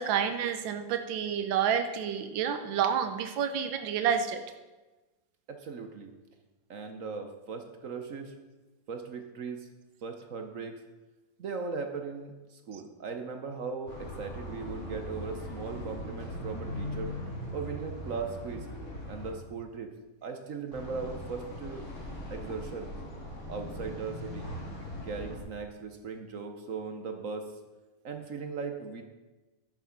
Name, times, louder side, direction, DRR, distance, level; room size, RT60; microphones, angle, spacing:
voice 1, 0.0-4.4, right 8 dB, 85° right, 8 dB, 1.5 m, -29 dB
voice 2, 5.5-6.1 6.7-8.3 8.9-9.7 10.0-10.8 11.4-17.1 17.5-18.7 19.1-19.9 20.2-21.9 22.3-22.9 23.5-24.5 25.0-27.6 28.0-29.0, right 5 dB, 55° right, 6 dB, 1.1 m, -38 dB
sound 1, 13.9-19.3 20.7-25.4, left 1 dB, 40° left, 2.5 m, -40 dB
11.5 x 7.3 x 5.8 m, 1.2 s
omnidirectional pair, 2.0 m